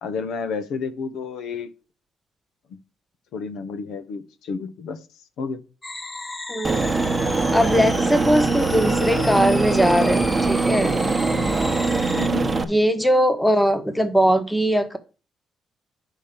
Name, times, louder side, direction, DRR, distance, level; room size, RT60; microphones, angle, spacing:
voice 1, 0.0-1.7 3.3-5.0 5.4-5.6 12.2-12.5, left 5 dB, 80° left, 10 dB, 1.0 m, -30 dB
sound 1, 5.8-12.3, left 2 dB, 20° left, 0.7 m, -34 dB
voice 2, 6.5-6.8 7.5-10.9 12.7-15.0, equal, 5° left, 9 dB, 1.1 m, -20 dB
Aircraft, 6.6-12.6, right 3 dB, 25° right, 1.0 m, -22 dB
5.7 x 5.3 x 6.7 m, 0.34 s
cardioid pair, 90°, 0 cm